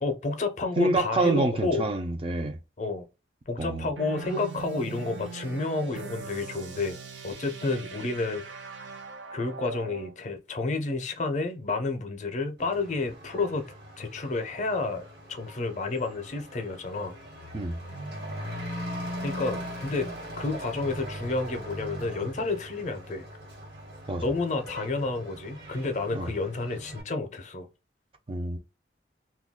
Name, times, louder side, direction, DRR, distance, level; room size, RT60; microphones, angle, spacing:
voice 1, 0.0-1.9 2.8-3.0 3.5-7.0 7.2-8.5 9.3-17.1 19.2-20.1 20.3-23.3 24.2-27.7, left 3 dB, 40° left, 0.5 m, -30 dB
voice 2, 0.8-2.6 3.6-3.9 17.5-17.8 24.1-24.3 26.1-26.3 28.3-28.6, right 2 dB, 30° right, 0.4 m, -27 dB
sound 1, 4.0-10.1, right 5 dB, 85° right, 0.6 m, -41 dB
Truck / Accelerating revving vroom, 12.6-27.0, equal, 60° right, 1.2 m, -40 dB
2.2 x 2.2 x 3.5 m
head